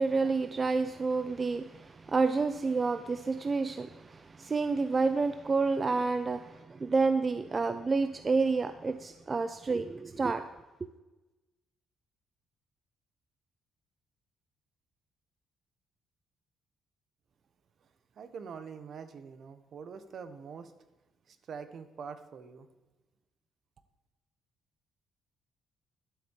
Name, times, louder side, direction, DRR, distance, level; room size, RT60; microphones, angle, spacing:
voice 1, 0.0-10.4, right 4 dB, 25° right, 0.6 m, -29 dB
voice 2, 18.1-20.7 21.3-22.7, right 6 dB, 50° right, 1.1 m, -44 dB
11.5 x 8.2 x 7.3 m
cardioid pair, 130°, 0 cm